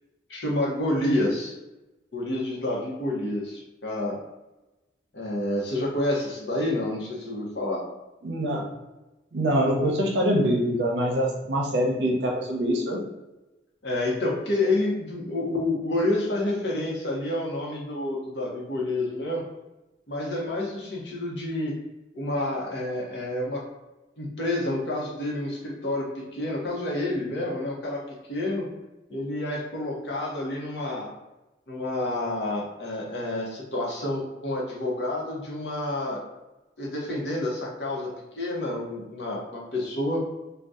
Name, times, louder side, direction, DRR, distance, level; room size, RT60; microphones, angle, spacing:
voice 1, 0.3-1.5 2.1-4.2 5.1-7.8 13.8-19.4 20.1-21.7 22.1-23.6 24.2-28.0 28.3-28.7 29.1-31.1 31.7-36.2 36.8-38.1 38.3-40.2, left 1 dB, 80° left, -3 dB, 0.8 m, -29 dB
voice 2, 8.2-8.6 9.3-13.0, equal, 80° right, -1 dB, 0.6 m, -24 dB
2.6 x 2.2 x 3.5 m, 1.0 s
head